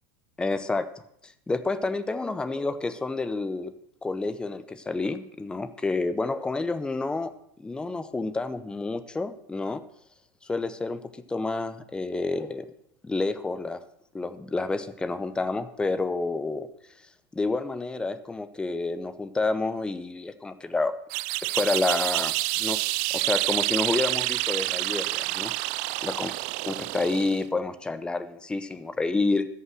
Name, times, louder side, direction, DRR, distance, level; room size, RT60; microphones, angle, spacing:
voice 1, 0.4-0.9 1.2-3.7 4.0-7.3 7.6-9.8 10.4-11.0 11.3-12.7 13.0-13.8 14.1-16.7 17.3-20.9 21.5-22.8 23.1-25.8 26.0-26.3 26.7-29.5, left 3 dB, 5° left, 11 dB, 0.6 m, -29 dB
sound 1, 21.1-27.5, right 20 dB, 50° right, 0.4 m, -28 dB
13.5 x 5.8 x 7.7 m, 0.75 s
supercardioid pair, 150°, 12 cm